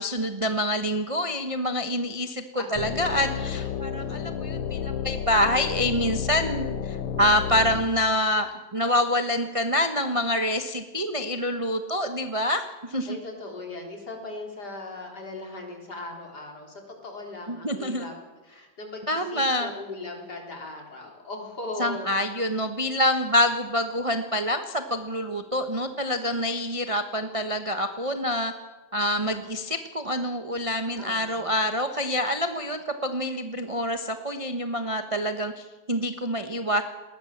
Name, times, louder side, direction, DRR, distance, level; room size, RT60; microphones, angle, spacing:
voice 1, 0.0-13.1 17.5-18.1 19.1-19.7 21.8-28.5 28.9-36.8, left 1 dB, 25° right, 7 dB, 0.7 m, -26 dB
sound 1, 2.7-7.9, left 7 dB, 90° left, 2.0 m, -31 dB
voice 2, 3.2-3.7 4.0-4.1 13.1-18.1 18.4-22.1 30.9-31.5, left 2 dB, 45° left, 2 dB, 4.5 m, -39 dB
20.0 x 19.5 x 7.3 m, 1.2 s
omnidirectional pair, 2.4 m